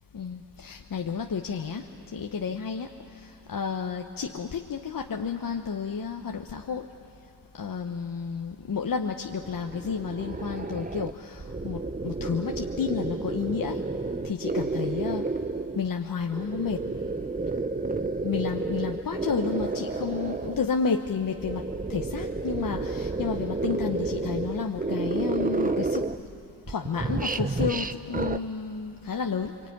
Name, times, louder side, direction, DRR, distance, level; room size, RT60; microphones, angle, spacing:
voice 1, 0.1-1.9 2.1-2.9 3.2-6.9 7.6-13.8 14.2-15.3 15.7-16.8 18.2-21.6 21.9-26.1 26.7-29.5, left 6 dB, 55° left, 3 dB, 1.2 m, -31 dB
sound 1, 9.3-15.9 16.3-20.7 21.2-26.4 26.6-28.4, right 3 dB, 20° right, 0.9 m, -31 dB
24.5 x 24.0 x 9.6 m, 2.8 s
cardioid pair, 50°, 41 cm